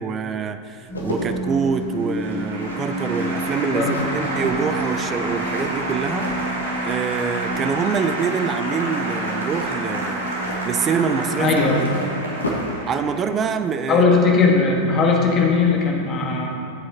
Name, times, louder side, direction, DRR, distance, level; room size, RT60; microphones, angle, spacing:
voice 1, 0.0-6.3 6.8-10.3 10.6-12.1 12.9-14.1, right 6 dB, 25° right, 9 dB, 0.5 m, -25 dB
sound 1, 0.7-7.1 7.4-8.0 9.4-12.9 13.1-13.3, left 1 dB, 75° left, 1.3 m, -35 dB
sound 2, 0.9-13.1, right 2 dB, 10° left, 0.8 m, -31 dB
Applause, 1.1-13.6, right 1 dB, 70° right, 1.7 m, -29 dB
voice 2, 11.4-11.9 13.9-16.5, left 4 dB, 30° left, 0 dB, 1.5 m, -18 dB
14.0 x 7.7 x 2.8 m, 2.6 s
figure-of-eight pair, 90°, 0 cm